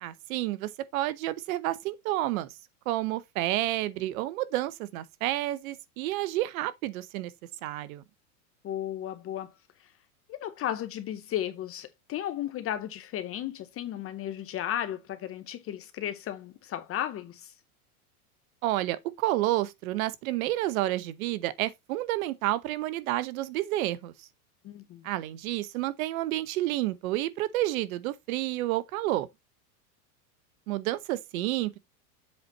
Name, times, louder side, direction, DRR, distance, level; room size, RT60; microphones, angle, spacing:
voice 1, 0.0-2.5 2.9-7.3 7.6-8.0 18.6-24.3 25.0-29.3 30.7-31.8, right 16 dB, 65° right, 1.0 m, -30 dB
voice 2, 8.6-9.5 10.3-17.5 24.6-25.0, left 11 dB, 30° left, 0.7 m, -34 dB
7.7 x 4.1 x 4.1 m
hypercardioid pair, 115°, 45 cm